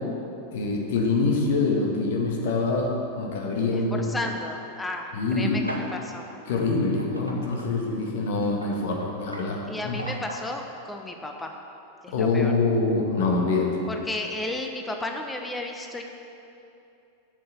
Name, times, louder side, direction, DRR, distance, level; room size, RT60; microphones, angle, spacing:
voice 1, 0.5-4.0 5.1-5.5 6.5-10.0 12.1-13.7, left 3 dB, 55° left, 0 dB, 1.6 m, -25 dB
voice 2, 3.7-5.1 5.4-6.2 9.7-11.5 12.0-12.5 13.9-16.0, left 2 dB, 10° left, 3 dB, 0.9 m, -33 dB
sound 1, 5.6-6.0 6.3-6.4 7.0-10.6, right 1 dB, 85° right, 1.0 m, -38 dB
7.6 x 6.7 x 8.2 m, 2.8 s
figure-of-eight pair, 90°, 0 cm